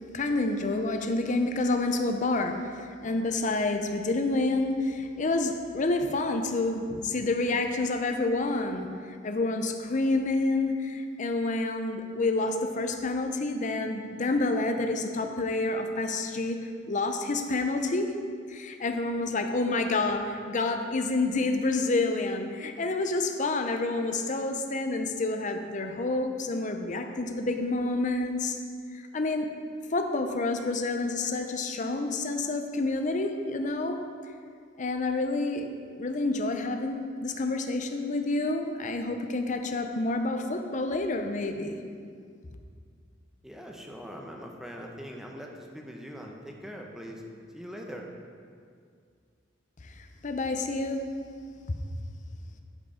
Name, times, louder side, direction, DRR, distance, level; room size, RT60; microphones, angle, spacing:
voice 1, 0.1-18.1 18.5-28.6 28.9-29.5 29.9-34.0 34.8-41.8 49.8-51.0 51.7-51.8, left 2 dB, 40° left, 6 dB, 0.6 m, -28 dB
voice 2, 43.4-47.2 47.5-48.1, equal, ahead, 0 dB, 0.8 m, -42 dB
10.5 x 4.8 x 5.0 m, 2.2 s
head